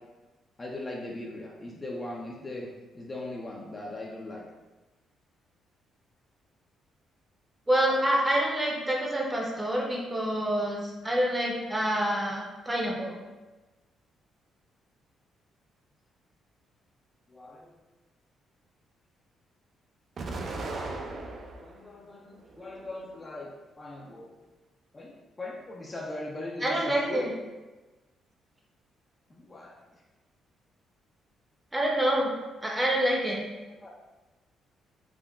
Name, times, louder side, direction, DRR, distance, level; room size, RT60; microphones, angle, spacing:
voice 1, 0.6-2.7 2.9-4.4 17.3-17.7 21.6-23.5 23.8-24.3 24.9-27.3 29.3-29.8 33.8-33.9, left 2 dB, 25° left, -2 dB, 0.4 m, -39 dB
voice 2, 7.7-13.2 26.6-27.3 31.7-32.3 32.6-33.5, right 1 dB, 15° right, -2 dB, 0.6 m, -27 dB
Explosion, 20.2-21.8 22.3-23.2, right 3 dB, 50° right, 0.4 m, -37 dB
3.6 x 2.1 x 2.2 m, 1.2 s
cardioid pair, 90°, 0 cm